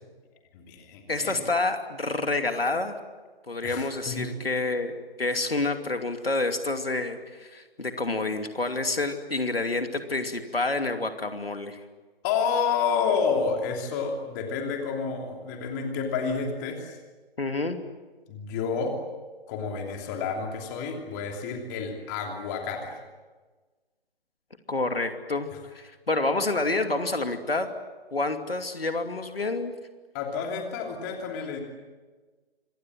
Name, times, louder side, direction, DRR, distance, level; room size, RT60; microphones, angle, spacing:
voice 1, 0.5-1.4 3.6-4.3 12.2-17.0 18.3-19.0 19.5-23.0 30.1-31.6, left 5 dB, 20° left, 3 dB, 3.0 m, -29 dB
voice 2, 1.1-2.9 3.5-4.9 5.2-11.8 17.4-17.8 24.7-27.7 28.1-29.7, left 2 dB, 70° left, 6 dB, 2.7 m, -28 dB
27.0 x 24.5 x 7.7 m, 1.3 s
figure-of-eight pair, 145°, 31 cm